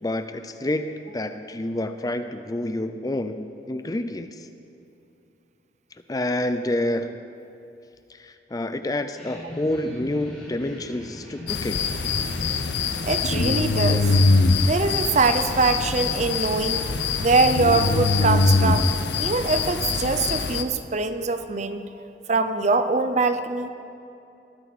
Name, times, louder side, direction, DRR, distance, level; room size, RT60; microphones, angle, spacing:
voice 1, 0.0-4.5 6.1-7.1 8.1-11.9, left 1 dB, 20° left, 9 dB, 0.5 m, -28 dB
sound 1, 9.1-19.7, left 1 dB, 5° left, 4.7 m, -41 dB
sound 2, 11.5-20.6, left 3 dB, 75° left, 0.7 m, -23 dB
voice 2, 13.0-14.1 14.6-16.8 17.2-18.9 19.2-21.8 22.3-23.7, right 3 dB, 40° right, 9 dB, 0.7 m, -23 dB
20.5 x 14.0 x 4.2 m, 2.7 s
head